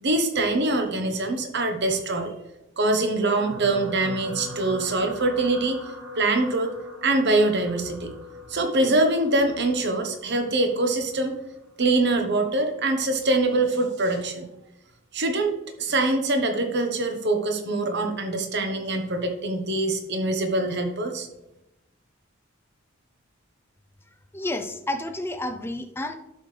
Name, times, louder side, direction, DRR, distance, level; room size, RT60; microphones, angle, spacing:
voice 1, 0.0-2.3 2.8-5.8 6.2-6.7 7.0-8.1 8.5-11.3 11.8-14.5 15.1-15.5 15.8-21.3, right 2 dB, 55° right, 5 dB, 1.2 m, -24 dB
sound 1, 3.4-11.8 12.6-12.8 13.1-13.2, left 1 dB, 85° right, 1.2 m, -41 dB
voice 2, 24.3-26.2, left 1 dB, 10° left, 7 dB, 0.6 m, -30 dB
11.0 x 6.6 x 3.4 m, 0.91 s
head